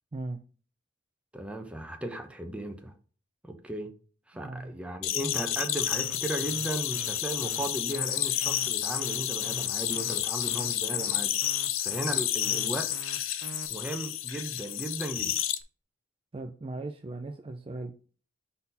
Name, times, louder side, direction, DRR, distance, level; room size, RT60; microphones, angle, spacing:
voice 1, 1.3-2.9 3.4-3.9 4.3-11.3 11.8-12.9 13.7-15.4, right 1 dB, 5° right, 0.8 m, -36 dB
voice 2, 4.3-4.7 16.3-17.9, right 2 dB, 30° right, 0.4 m, -38 dB
sound 1, 5.0-15.6, left 12 dB, 80° left, 0.5 m, -30 dB
sound 2, 5.9-13.7, right 4 dB, 90° right, 0.5 m, -44 dB
4.2 x 4.1 x 5.4 m
head